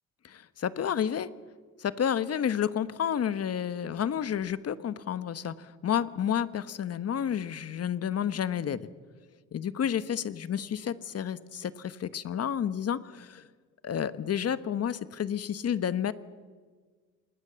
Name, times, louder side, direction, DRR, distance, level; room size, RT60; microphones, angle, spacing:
voice 1, 0.2-1.3 1.8-8.8 9.5-13.4 13.8-16.1, left 9 dB, 55° left, 14 dB, 1.2 m, -30 dB
27.0 x 20.5 x 7.0 m, 1.5 s
cardioid pair, 90°, 30 cm